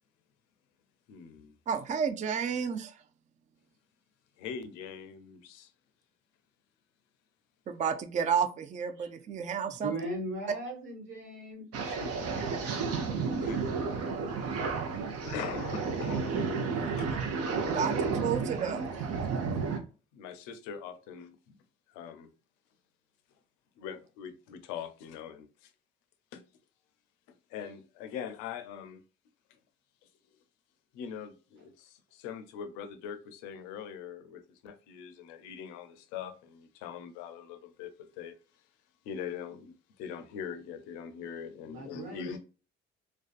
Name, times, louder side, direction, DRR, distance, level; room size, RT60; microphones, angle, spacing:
voice 1, 1.1-1.5 4.4-5.7 11.8-12.2 13.4-13.6 14.7-14.8 15.2-16.4 17.0-17.2 20.1-21.6 21.9-22.3 23.8-25.7 26.3-26.4 27.5-29.0 30.9-38.4 39.0-42.4, left 7 dB, 85° left, 0.5 m, -42 dB
voice 2, 1.7-2.9 7.7-9.9 12.7-13.2 16.7-16.9 17.5-18.8, right 7 dB, 25° right, 0.3 m, -32 dB
voice 3, 9.8-11.7 41.6-42.4, right 2 dB, 90° right, 1.1 m, -38 dB
sound 1, 11.7-19.8, right 5 dB, 55° right, 0.7 m, -32 dB
2.5 x 2.3 x 2.4 m
supercardioid pair, 65°, 29 cm